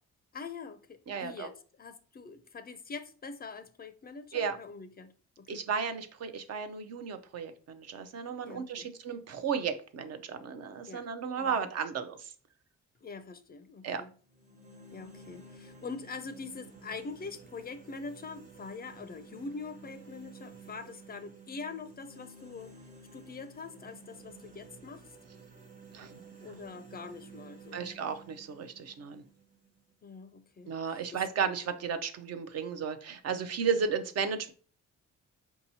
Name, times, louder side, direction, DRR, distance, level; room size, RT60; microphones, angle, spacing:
voice 1, 0.3-5.6 8.4-8.9 10.9-11.0 11.3-11.7 13.0-14.1 14.9-22.7 23.1-25.0 26.4-27.9 30.0-31.3, left 4 dB, 30° left, 0.4 m, -44 dB
voice 2, 1.1-1.5 4.3-4.6 5.5-12.3 13.8-14.0 25.9-26.2 27.7-29.2 30.7-34.5, right 6 dB, 55° right, 0.6 m, -34 dB
sound 1, 14.3-30.3, right 4 dB, 25° right, 1.0 m, -53 dB
4.5 x 2.8 x 2.7 m
cardioid pair, 90°, 30 cm